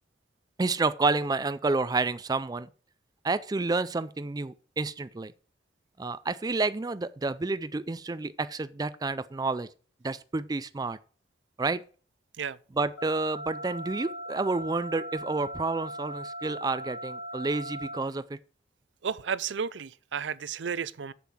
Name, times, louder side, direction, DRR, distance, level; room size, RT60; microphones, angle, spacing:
voice 1, 0.6-2.7 3.2-5.3 6.0-9.7 10.0-11.0 11.6-11.8 12.7-18.4, right 3 dB, 20° right, 0.4 m, -29 dB
sound 1, 13.0-18.0, equal, 75° left, 2.4 m, -39 dB
voice 2, 19.0-21.1, right 6 dB, 75° right, 0.5 m, -33 dB
7.5 x 7.0 x 6.2 m
head